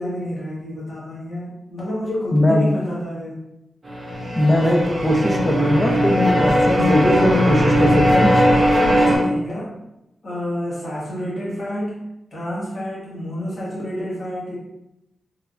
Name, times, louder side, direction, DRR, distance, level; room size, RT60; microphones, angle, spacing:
voice 1, 0.0-3.4 8.9-9.7 10.2-12.0 12.3-14.6, equal, 40° left, -7 dB, 1.2 m, -29 dB
voice 2, 2.3-2.7 4.3-8.3, left 1 dB, 15° left, 0 dB, 0.6 m, -19 dB
sound 1, 3.8-9.2, equal, 30° right, 0.7 m, -18 dB
3.2 x 2.2 x 2.5 m, 0.90 s
wide cardioid pair, 105°, 0 cm